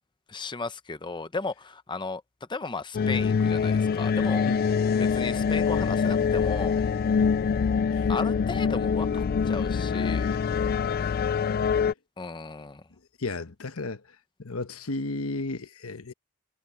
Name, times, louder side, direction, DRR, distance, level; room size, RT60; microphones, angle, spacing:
voice 1, 0.3-2.2 2.5-4.5 5.0-6.8 8.1-10.4 12.2-12.8, left 3 dB, 20° left, 0.7 m, -35 dB
sound 1, 2.9-11.9, left 6 dB, 45° left, 0.3 m, -25 dB
voice 2, 13.2-14.0 14.4-16.1, left 2 dB, 70° left, 1.1 m, -33 dB
head